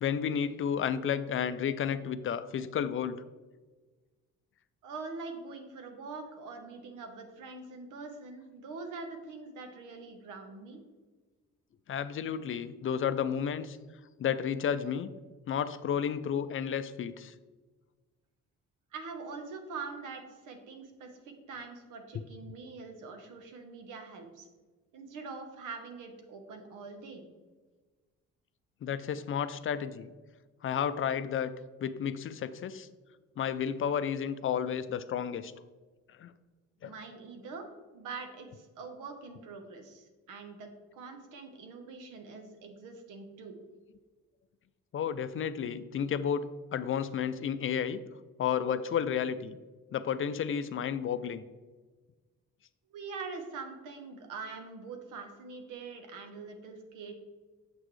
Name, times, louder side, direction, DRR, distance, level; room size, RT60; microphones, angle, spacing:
voice 1, 0.0-3.2 11.9-13.8 14.2-15.1 15.5-17.3 28.8-30.1 30.6-31.5 31.8-32.9 33.4-35.5 36.1-36.3 36.8-36.9 44.9-48.0 48.4-49.6 49.9-51.4, left 8 dB, 45° left, 13 dB, 0.4 m, -32 dB
voice 2, 4.8-10.8 18.9-24.5 24.9-27.3 36.8-37.6 37.9-43.7 52.9-57.1, right 4 dB, 90° right, 5 dB, 1.1 m, -44 dB
7.4 x 5.9 x 3.2 m, 1.3 s
cardioid pair, 90°, 30 cm